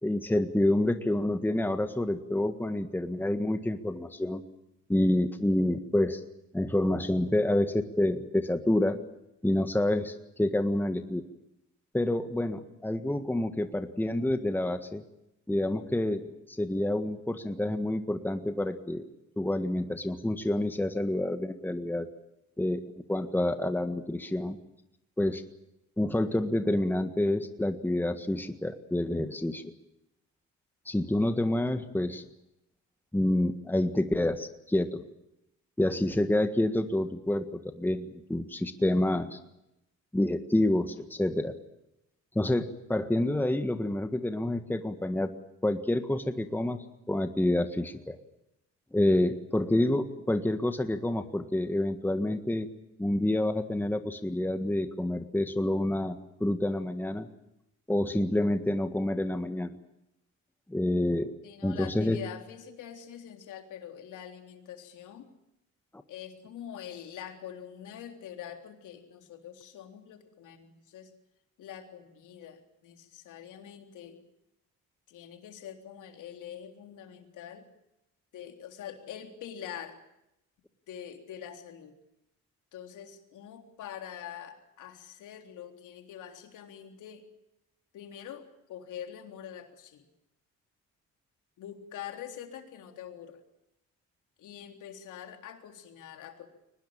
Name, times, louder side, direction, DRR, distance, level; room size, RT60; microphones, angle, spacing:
voice 1, 0.0-4.4 4.9-6.2 6.5-9.0 9.4-11.2 11.9-15.0 15.5-19.0 19.4-22.1 22.6-22.8 23.1-24.6 25.2-25.4 26.0-29.7 30.8-32.2 33.1-35.0 35.8-37.4 37.7-39.4 40.1-41.5 42.3-45.3 45.6-46.8 47.1-48.2 48.9-52.7 53.0-57.3 57.9-59.7 60.7-61.3 61.6-62.2, left 1 dB, 5° left, 8 dB, 1.7 m, -28 dB
voice 2, 61.4-65.3 66.1-71.1 71.6-74.2 75.1-77.7 78.3-80.0 80.9-82.0 82.7-87.3 87.9-90.1 91.6-93.4 94.4-96.5, left 9 dB, 85° left, 5 dB, 3.7 m, -45 dB
23.5 x 20.0 x 8.9 m, 0.86 s
cardioid pair, 90°, 30 cm